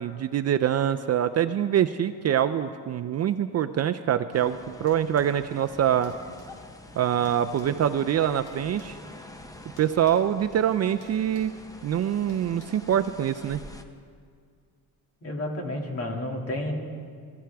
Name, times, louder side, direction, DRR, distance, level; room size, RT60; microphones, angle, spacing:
voice 1, 0.0-6.1 7.0-9.0 9.8-11.5 11.8-13.6, right 10 dB, 45° right, 11 dB, 0.4 m, -25 dB
sound 1, 4.3-13.8, left 1 dB, 10° left, 0.8 m, -46 dB
sound 2, 4.9-5.4 6.0-6.5 7.2-8.9 9.8-10.2 10.5-10.7 11.0-11.6 12.3-12.7, left 2 dB, 65° left, 4.7 m, -53 dB
voice 2, 15.2-16.7, left 1 dB, 40° left, 1 dB, 2.3 m, -31 dB
22.0 x 14.0 x 3.5 m, 2.1 s
cardioid pair, 125°, 38 cm